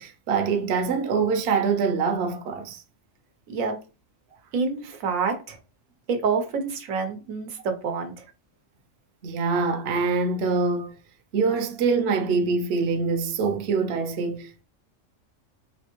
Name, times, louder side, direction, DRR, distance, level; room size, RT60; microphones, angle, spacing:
voice 1, 0.0-2.8 9.2-10.9 11.3-14.6, right 4 dB, 60° right, 0.8 m, -24 dB
voice 2, 3.5-3.8 4.5-5.6 6.1-8.2, right 5 dB, 85° right, 1.2 m, -27 dB
4.0 x 3.3 x 3.0 m
omnidirectional pair, 1.4 m